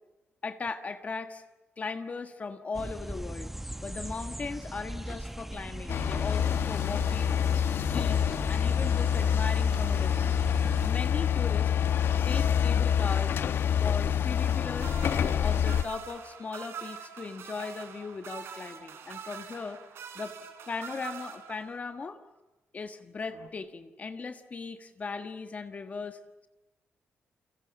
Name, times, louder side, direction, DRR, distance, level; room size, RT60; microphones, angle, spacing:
voice 1, 0.4-1.4 1.8-3.5 3.8-7.4 7.7-11.7 12.3-13.4 13.8-15.0 15.4-19.8 20.1-20.3 20.7-22.2 22.7-26.5, left 4 dB, 35° left, 8 dB, 1.5 m, -38 dB
sound 1, 2.7-10.9, right 1 dB, 5° right, 1.0 m, -39 dB
sound 2, 5.9-15.8, left 8 dB, 60° left, 1.1 m, -26 dB
sound 3, 14.4-22.0 23.3-23.5, right 7 dB, 75° right, 3.6 m, -44 dB
29.5 x 24.5 x 7.5 m, 1.0 s
cardioid pair, 120°, 4 cm